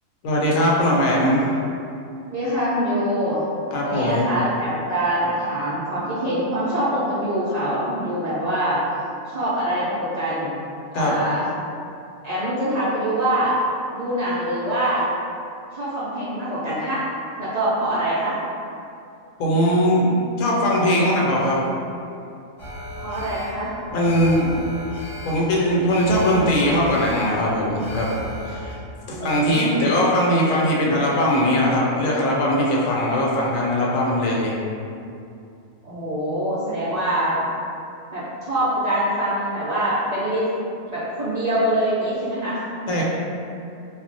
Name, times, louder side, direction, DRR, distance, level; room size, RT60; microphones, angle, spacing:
voice 1, 0.2-1.5 3.7-4.2 10.9-11.2 19.4-20.1 20.4-21.6 23.9-24.5 25.2-28.1 28.5-28.7 29.1-34.5 42.9-43.0, equal, 75° left, -4 dB, 1.0 m, -20 dB
voice 2, 2.3-3.4 3.8-8.8 9.3-10.5 10.9-11.5 12.2-13.6 13.9-15.0 15.7-17.1 17.4-18.4 21.0-21.2 23.0-23.7 29.1-29.9 35.8-37.4 38.1-40.5 40.9-43.0, right 1 dB, 65° right, -10 dB, 0.4 m, -24 dB
Alarm, 22.6-28.7, equal, 35° left, 0.6 m, -35 dB
2.3 x 2.1 x 3.9 m, 2.6 s
omnidirectional pair, 1.4 m